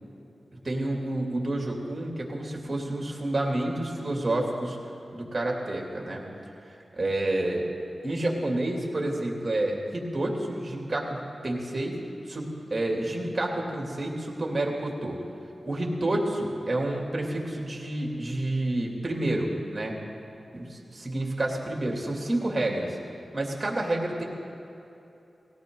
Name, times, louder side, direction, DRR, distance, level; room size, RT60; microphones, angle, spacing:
voice 1, 0.6-4.8 5.1-6.2 6.6-7.7 8.0-12.0 12.3-15.2 15.6-20.0 20.5-23.0 23.3-24.2, right 1 dB, 30° right, -1 dB, 2.9 m, -29 dB
19.5 x 17.5 x 3.9 m, 2.9 s
wide cardioid pair, 85°, 0 cm